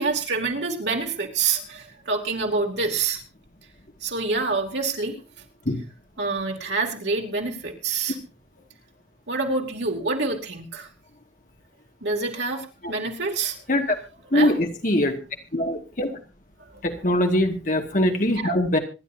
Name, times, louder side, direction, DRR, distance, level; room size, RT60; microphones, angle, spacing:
voice 1, 0.0-3.2 4.0-5.2 6.2-8.2 9.3-10.9 12.0-13.6 14.3-14.5 16.6-16.8, right 4 dB, 85° right, 2 dB, 2.9 m, -27 dB
voice 2, 14.3-15.2 15.5-16.1 16.8-18.8, left 1 dB, 50° left, 3 dB, 2.1 m, -22 dB
25.5 x 11.0 x 2.8 m, 0.32 s
head